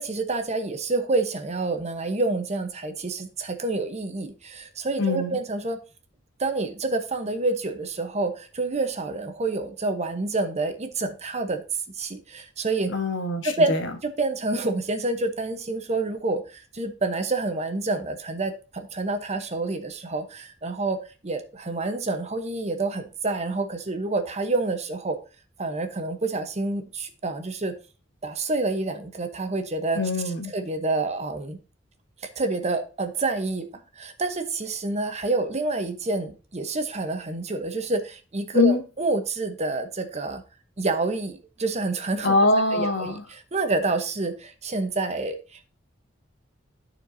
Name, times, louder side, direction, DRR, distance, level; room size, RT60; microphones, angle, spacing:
voice 1, 0.0-5.8 6.4-11.6 12.0-12.9 13.4-13.7 14.0-21.0 21.2-25.2 25.6-27.7 28.2-30.0 30.2-31.6 32.4-33.7 34.0-40.4 40.8-42.4 42.7-45.6, right 3 dB, 35° right, 0.9 m, -28 dB
voice 2, 5.0-5.4 12.9-13.8 30.0-30.5 38.5-38.8 42.2-43.2, left 2 dB, 65° left, 1.2 m, -23 dB
13.0 x 4.5 x 2.7 m
head